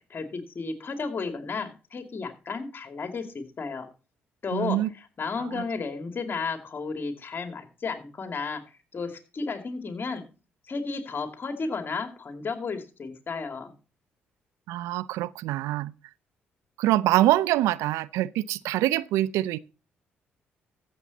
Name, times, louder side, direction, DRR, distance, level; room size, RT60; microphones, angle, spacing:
voice 1, 0.0-3.9 4.4-4.8 5.2-8.6 8.9-10.2 10.7-13.7, left 4 dB, 45° left, 2.4 m, -33 dB
voice 2, 4.5-4.9 5.5-5.6 14.7-15.9 16.8-19.6, right 15 dB, 75° right, 0.5 m, -25 dB
14.0 x 7.5 x 4.1 m
hypercardioid pair, 50°, 5 cm